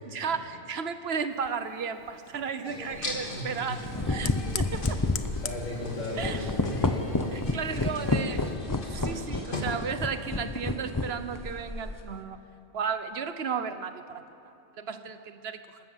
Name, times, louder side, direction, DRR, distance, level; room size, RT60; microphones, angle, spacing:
voice 1, 0.0-5.0 6.2-6.4 7.3-8.5 8.9-12.4 12.7-15.8, right 6 dB, 50° right, 10 dB, 1.1 m, -34 dB
Fire, 1.3-8.6, left 9 dB, 80° left, 1.3 m, -44 dB
sound 1, 2.6-9.9, left 1 dB, 40° left, 2.5 m, -40 dB
sound 2, 2.9-3.1 3.7-12.1, left 2 dB, 20° left, 0.7 m, -30 dB
voice 2, 3.3-3.8 5.4-7.0 7.7-7.9, left 2 dB, 65° left, -5 dB, 7.4 m, -36 dB
27.5 x 13.0 x 7.4 m, 2.8 s
omnidirectional pair, 1.4 m